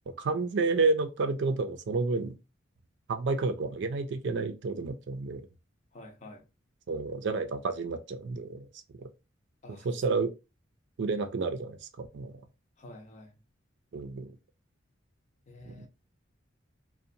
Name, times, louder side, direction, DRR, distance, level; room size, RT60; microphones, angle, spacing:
voice 1, 0.1-2.4 3.1-5.5 6.9-8.7 9.0-9.1 9.8-10.3 11.0-12.3 13.9-14.4 15.6-15.9, right 3 dB, 60° right, 0.4 m, -30 dB
voice 2, 5.9-6.4 9.6-9.9 12.8-13.4 15.5-15.9, left 1 dB, 35° left, 0.6 m, -49 dB
2.7 x 2.1 x 2.6 m
head